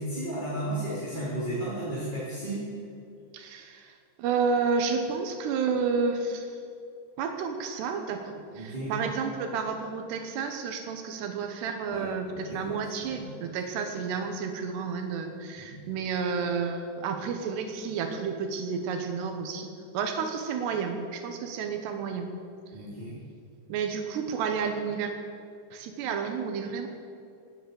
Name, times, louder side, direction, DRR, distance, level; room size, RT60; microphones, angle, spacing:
voice 1, 0.0-2.6 8.5-8.9 11.9-13.2 15.6-15.7 22.7-23.1, right 1 dB, 10° right, -9 dB, 3.4 m, -34 dB
voice 2, 3.3-6.6 7.2-22.3 23.7-25.1 25.7-26.9, right 5 dB, 85° right, 5 dB, 3.3 m, -31 dB
18.0 x 10.0 x 7.1 m, 2.4 s
omnidirectional pair, 4.7 m